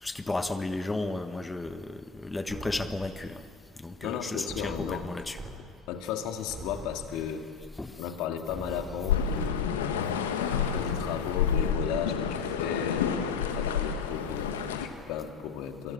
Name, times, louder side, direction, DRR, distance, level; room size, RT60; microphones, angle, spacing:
voice 1, 0.0-3.4 3.8-5.4 7.8-7.9, left 2 dB, 20° left, 9 dB, 1.5 m, -33 dB
sound 1, 2.5-3.5 4.5-5.5 6.0-6.1 6.5-7.5 8.5-9.5, right 2 dB, 45° right, 5.5 m, -43 dB
voice 2, 4.0-5.1 5.9-7.5 8.0-10.3 10.7-13.1 13.5-15.9, left 8 dB, 70° left, 5 dB, 2.1 m, -35 dB
sound 2, 9.1-14.9, left 7 dB, 90° left, 1.4 m, -29 dB
25.0 x 22.5 x 8.7 m, 2.3 s
hypercardioid pair, 55°, 0 cm